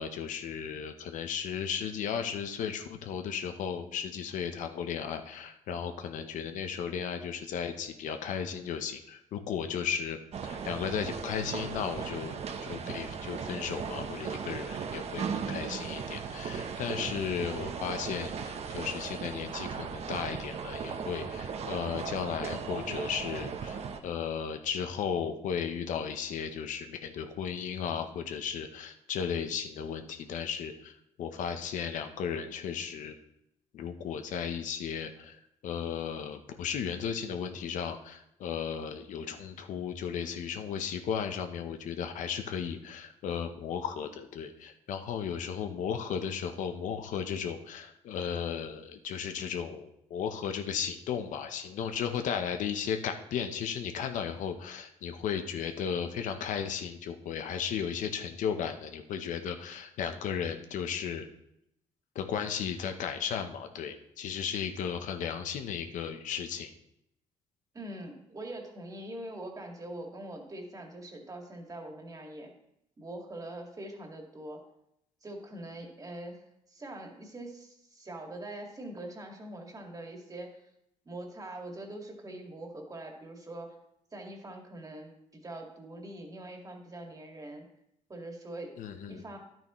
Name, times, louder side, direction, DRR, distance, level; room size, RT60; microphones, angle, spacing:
voice 1, 0.0-33.1 33.7-61.3 62.1-66.7 88.8-89.2, left 7 dB, 75° left, 7 dB, 0.8 m, -35 dB
sound 1, 10.3-24.0, right 6 dB, 55° right, 0.9 m, -37 dB
voice 2, 67.7-72.5 73.0-74.6 75.2-76.4 76.7-80.5 81.1-83.7 84.1-87.6 88.1-88.7 89.1-89.4, right 1 dB, 25° right, 2 dB, 2.0 m, -43 dB
10.5 x 9.1 x 3.1 m, 0.79 s
cardioid pair, 90°, 13 cm